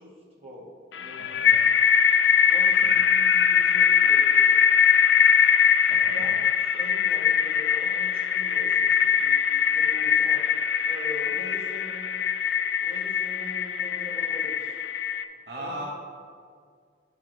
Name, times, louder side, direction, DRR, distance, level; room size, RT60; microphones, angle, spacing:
voice 1, 0.0-1.7 2.5-4.6 5.8-6.5 6.7-9.4 9.7-10.5 10.9-12.2 12.8-14.8 15.6-15.9, left 1 dB, 35° right, -4 dB, 1.8 m, -43 dB
sound 1, 0.9-15.2, left 7 dB, 75° left, 0.5 m, -22 dB
voice 2, 1.2-1.6 2.8-3.0 5.9-6.3 15.5-15.9, right 1 dB, 65° right, -3 dB, 1.1 m, -38 dB
11.0 x 4.9 x 4.6 m, 2.1 s
head